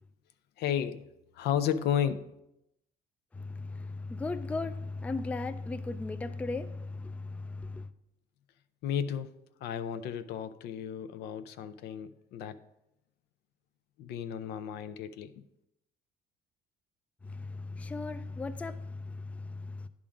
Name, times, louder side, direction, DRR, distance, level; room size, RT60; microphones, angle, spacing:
voice 1, 0.6-1.0 1.3-2.3 8.8-9.3 9.6-12.6 14.0-15.3, left 9 dB, 75° left, 0.5 m, -33 dB
voice 2, 3.3-7.9 17.2-19.9, left 3 dB, 10° left, 0.3 m, -37 dB
10.0 x 3.7 x 5.0 m
cardioid pair, 110°, 17 cm